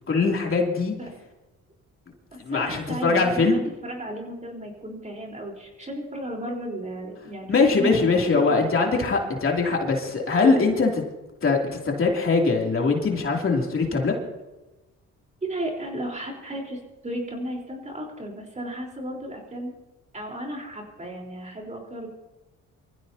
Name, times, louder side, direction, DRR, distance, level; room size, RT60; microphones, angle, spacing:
voice 1, 0.1-0.9 2.4-3.6 7.5-11.0 11.4-11.6 11.8-14.1, left 4 dB, 45° left, 0 dB, 2.9 m, -22 dB
voice 2, 2.3-8.6 15.4-19.7 20.1-22.1, right 1 dB, 25° right, 0 dB, 4.0 m, -34 dB
25.5 x 15.0 x 2.8 m, 1.1 s
cardioid pair, 90°, 30 cm